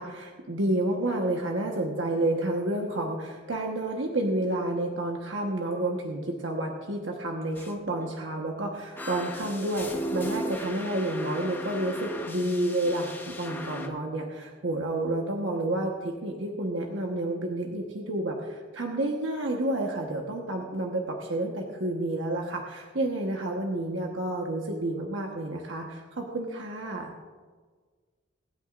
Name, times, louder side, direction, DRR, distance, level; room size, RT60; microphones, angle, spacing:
voice 1, 0.0-27.1, right 1 dB, 80° right, 1 dB, 1.3 m, -30 dB
sound 1, 7.5-7.7 8.0-8.2 9.0-13.9, equal, 10° left, 1.0 m, -36 dB
25.0 x 9.1 x 2.6 m, 1.5 s
head